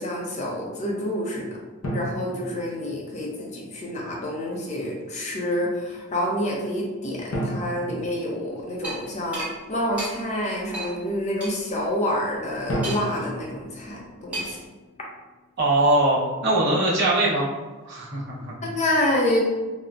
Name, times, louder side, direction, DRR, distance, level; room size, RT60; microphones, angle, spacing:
voice 1, 0.0-1.5 1.9-14.6 18.6-19.4, left 1 dB, 35° left, -2 dB, 0.6 m, -28 dB
sound 1, 1.8-3.4 7.3-9.2 12.7-14.9, equal, 80° left, 0.6 m, -33 dB
sound 2, 8.8-9.0 9.3-9.5 10.0-10.1 10.7-10.9 11.4-11.5 12.8-13.2 14.3-14.6, right 1 dB, 5° right, 0.8 m, -32 dB
voice 2, 15.6-17.5 17.8-18.6, right 2 dB, 55° right, -6 dB, 0.7 m, -21 dB
3.6 x 2.1 x 2.3 m, 1.2 s
head